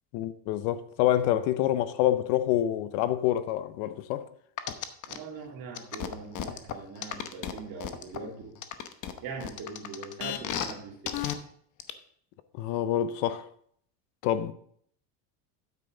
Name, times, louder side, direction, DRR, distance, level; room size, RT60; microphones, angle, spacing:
voice 1, 0.1-4.3 12.6-13.5 14.2-14.5, left 12 dB, 70° left, 0.8 m, -27 dB
sound 1, 4.6-5.2 5.7-8.2 8.6-10.7 11.1-11.3 11.8-11.9, left 10 dB, 40° left, 0.9 m, -33 dB
voice 2, 5.1-8.6 9.2-11.2, right 4 dB, 50° right, 2.6 m, -41 dB
9.4 x 7.6 x 3.9 m
supercardioid pair, 120°, 45 cm